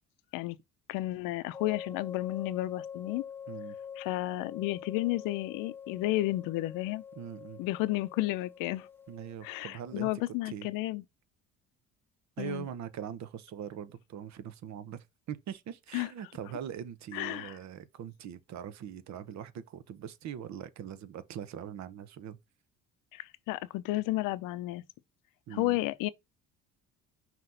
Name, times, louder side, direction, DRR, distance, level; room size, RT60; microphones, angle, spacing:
voice 1, 0.9-3.2 4.0-7.0 7.6-8.9 9.4-11.0 12.4-12.7 15.9-16.1 17.1-17.6 23.1-24.8 25.5-26.1, left 17 dB, 90° left, 0.6 m, -32 dB
sound 1, 1.5-10.0, left 7 dB, 5° left, 0.7 m, -45 dB
voice 2, 7.2-7.6 9.1-10.1 10.5-10.7 12.4-22.4 25.5-25.8, right 9 dB, 60° right, 0.9 m, -42 dB
5.8 x 3.0 x 5.4 m
cardioid pair, 115°, 32 cm